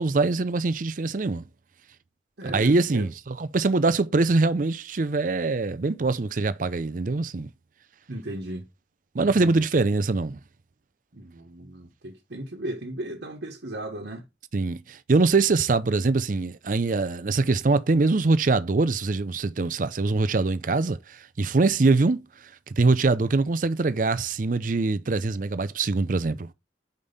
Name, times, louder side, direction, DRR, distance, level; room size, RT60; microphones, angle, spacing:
voice 1, 0.0-1.4 2.5-7.5 9.1-10.4 14.5-22.2 22.8-26.5, right 3 dB, 50° right, 0.5 m, -23 dB
voice 2, 2.4-3.1 8.1-8.7 9.4-9.6 11.1-14.2, right 1 dB, 75° right, 1.3 m, -36 dB
5.3 x 5.2 x 4.0 m
head